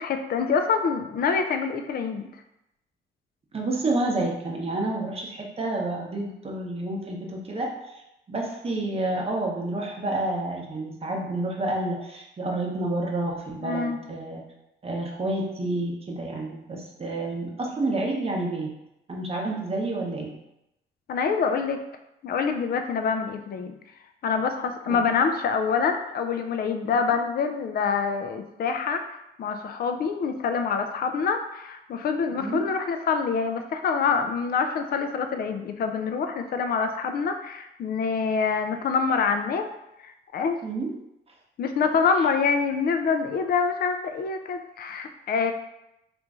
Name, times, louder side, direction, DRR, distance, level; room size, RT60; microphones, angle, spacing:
voice 1, 0.0-2.3 13.6-14.0 21.1-21.8 22.2-23.7 24.2-39.7 40.0-40.6 41.6-45.5, left 5 dB, 50° left, 7 dB, 0.4 m, -26 dB
voice 2, 3.5-8.0 8.3-14.4 14.8-18.7 19.1-20.3 24.9-25.0 32.3-32.6 40.6-40.9, right 2 dB, 30° right, -1 dB, 0.8 m, -29 dB
2.9 x 2.5 x 3.5 m, 0.87 s
cardioid pair, 90°, 20 cm